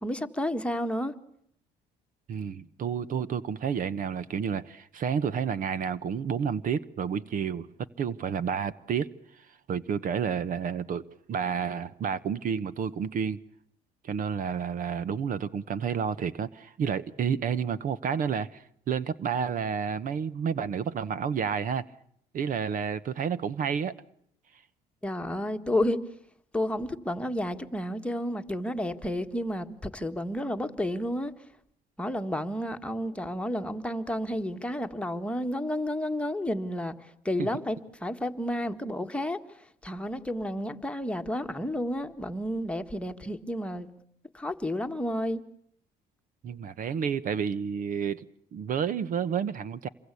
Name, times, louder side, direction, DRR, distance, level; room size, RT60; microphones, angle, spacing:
voice 1, 0.0-1.1 25.0-26.0 26.5-31.3 32.0-43.9 44.3-45.4, left 1 dB, 5° left, 1.7 m, -31 dB
voice 2, 2.3-7.7 8.0-9.1 9.4-13.4 14.0-21.8 22.3-23.9 37.4-37.5 46.4-49.9, right 7 dB, 55° right, 1.1 m, -30 dB
27.5 x 23.0 x 8.5 m
cardioid pair, 110°, 17 cm